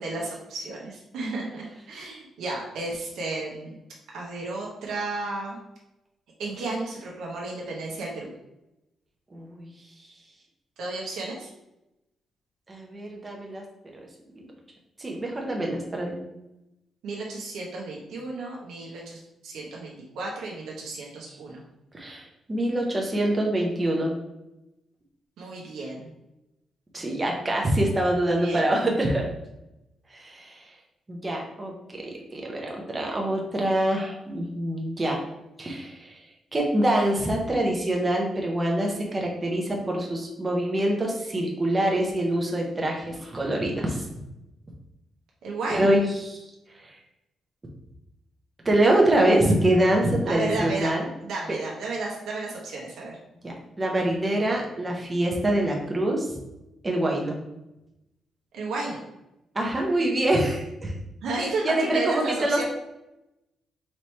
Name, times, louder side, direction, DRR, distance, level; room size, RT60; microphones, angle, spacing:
voice 1, 0.0-3.7 4.1-5.6 6.4-8.3 10.8-11.5 17.0-21.6 25.4-26.1 28.3-28.8 45.4-45.9 50.3-53.2 58.5-59.0 61.2-62.6, right 3 dB, 80° right, -2 dB, 0.8 m, -33 dB
voice 2, 9.3-9.7 12.7-13.6 13.9-14.1 15.0-16.1 21.9-24.1 26.9-29.3 30.1-30.6 31.1-32.0 32.3-35.2 35.6-36.2 36.5-44.1 45.7-46.4 46.8-46.9 48.6-51.1 53.4-56.4 56.8-57.4 59.5-60.9 61.6-62.6, right 1 dB, 15° right, -1 dB, 0.6 m, -25 dB
4.1 x 3.0 x 3.2 m, 0.91 s
cardioid pair, 170°, 0 cm